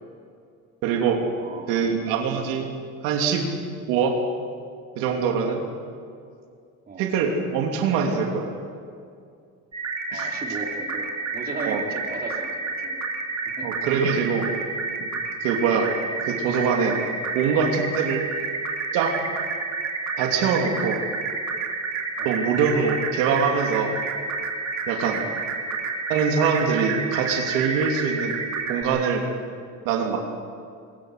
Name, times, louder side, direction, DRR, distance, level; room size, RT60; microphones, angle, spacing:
voice 1, 0.8-1.3 1.7-2.7 3.0-3.5 3.9-4.2 5.0-5.6 7.0-8.5 10.1-10.3 11.7-11.8 13.6-14.5 15.0-15.1 15.4-15.9 16.2-17.0 17.3-18.2 18.9-19.1 20.2-21.0 22.2-23.9 24.9-25.2 26.1-28.3 28.7-29.3 29.8-30.2, right 6 dB, 85° right, 2 dB, 3.0 m, -23 dB
voice 2, 1.4-1.9 2.3-2.5 5.5-5.7 6.9-7.0 10.1-13.1 13.6-13.7 22.2-22.4 25.2-25.5, right 3 dB, 30° right, 0 dB, 3.6 m, -36 dB
sound 1, 9.7-28.8, right 4 dB, 55° right, 3.4 m, -30 dB
23.5 x 21.0 x 6.7 m, 2.3 s
cardioid pair, 110°, 33 cm